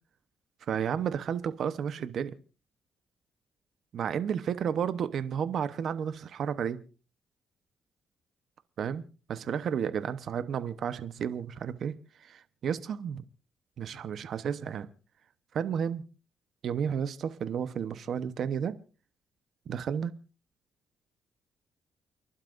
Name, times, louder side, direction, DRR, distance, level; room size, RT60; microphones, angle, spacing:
voice 1, 0.7-2.3 3.9-6.8 8.8-9.0 9.3-11.9 12.2-13.2 13.8-14.9 15.5-16.0 16.6-18.8 19.7-20.1, right 8 dB, 60° right, 0.9 m, -32 dB
29.5 x 11.5 x 2.6 m
cardioid pair, 90°, 0 cm